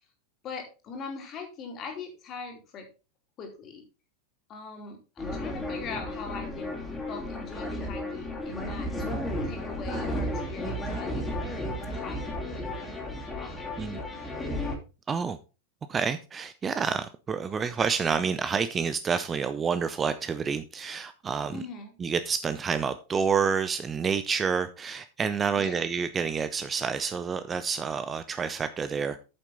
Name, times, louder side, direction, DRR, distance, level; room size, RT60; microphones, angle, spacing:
voice 1, 0.4-2.9 3.4-3.8 4.5-6.8 7.1-8.9 9.4-11.4 11.9-12.9 13.3-14.2 21.5-21.9 25.5-25.8, left 4 dB, 30° left, 3.0 m, -41 dB
sound 1, 5.2-14.8, left 1 dB, 10° left, 2.8 m, -33 dB
voice 2, 15.1-15.4 15.9-21.6 22.0-29.2, right 6 dB, 20° right, 0.6 m, -28 dB
8.8 x 7.4 x 3.9 m
figure-of-eight pair, 90°, 0 cm